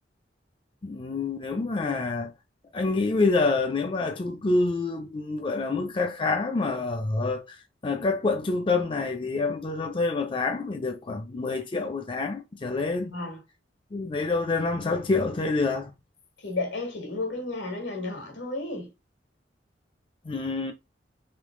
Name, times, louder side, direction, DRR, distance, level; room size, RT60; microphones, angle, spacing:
voice 1, 0.8-2.3 2.7-7.6 7.8-13.2 13.9-15.9 20.2-20.7, left 3 dB, 30° left, 0.4 m, -27 dB
voice 2, 13.1-13.4 16.4-18.9, left 2 dB, 85° left, 1.6 m, -32 dB
3.7 x 2.9 x 3.6 m
head